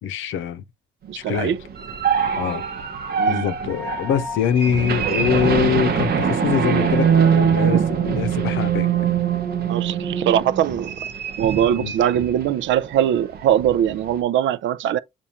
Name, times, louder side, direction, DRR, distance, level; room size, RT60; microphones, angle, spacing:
voice 1, 0.0-0.6 1.1-1.5 2.4-2.6 3.3-8.9 11.7-11.9, left 8 dB, 80° left, 0.6 m, -23 dB
voice 2, 1.1-1.6 3.2-3.5 7.6-7.9 9.7-11.0 11.4-15.0, right 10 dB, 70° right, 0.5 m, -21 dB
sound 1, 1.5-12.5 12.9-13.0 13.4-14.1, right 7 dB, 50° right, 0.8 m, -22 dB
7.0 x 2.5 x 2.8 m
cardioid pair, 90°, 20 cm